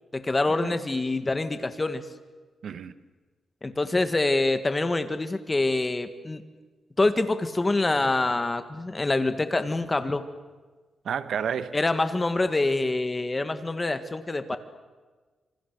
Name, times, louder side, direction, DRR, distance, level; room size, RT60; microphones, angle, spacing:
voice 1, 0.1-2.0 3.6-6.4 7.0-10.2 11.7-14.6, left 2 dB, 20° left, 1.8 m, -25 dB
voice 2, 2.6-2.9 11.0-11.8, right 7 dB, 70° right, 1.2 m, -30 dB
27.0 x 26.0 x 6.8 m
cardioid pair, 120°, 0 cm